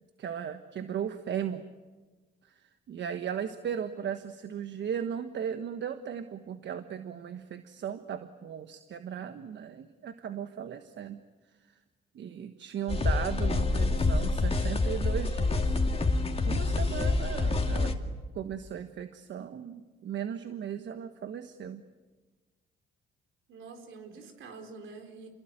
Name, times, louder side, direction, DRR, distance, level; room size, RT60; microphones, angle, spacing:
voice 1, 0.2-1.6 2.9-11.2 12.1-15.8 16.5-17.9 18.3-21.8, right 8 dB, 65° right, 9 dB, 1.4 m, -37 dB
sound 1, 12.9-17.9, left 3 dB, 30° left, 2.5 m, -27 dB
voice 2, 23.5-25.3, right 4 dB, 80° right, 5 dB, 4.4 m, -46 dB
28.5 x 22.5 x 9.1 m, 1.3 s
cardioid pair, 90°, 20 cm